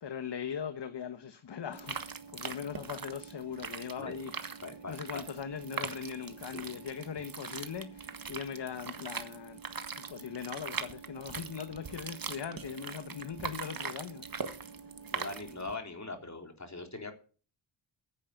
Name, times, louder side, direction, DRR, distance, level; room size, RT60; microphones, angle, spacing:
voice 1, 0.0-4.6 4.9-9.6 10.0-14.3, left 7 dB, 55° left, 1.3 m, -40 dB
sound 1, 1.7-15.8, right 5 dB, 40° right, 1.7 m, -41 dB
voice 2, 4.6-5.2 6.5-6.7 15.1-17.1, left 3 dB, 35° left, 3.8 m, -41 dB
10.0 x 8.4 x 9.2 m
cardioid pair, 55°, 50 cm